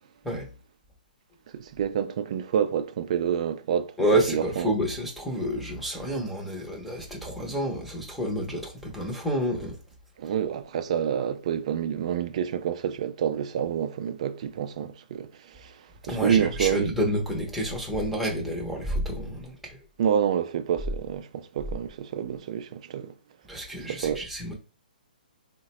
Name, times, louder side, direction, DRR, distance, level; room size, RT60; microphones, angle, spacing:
voice 1, 1.5-3.9 4.3-4.7 10.2-16.9 20.0-23.1 23.9-24.2, right 8 dB, 45° right, 0.4 m, -28 dB
voice 2, 4.0-9.8 16.1-19.8 23.5-24.5, equal, ahead, 0.7 m, -29 dB
3.7 x 2.1 x 2.9 m
hypercardioid pair, 160°, 5 cm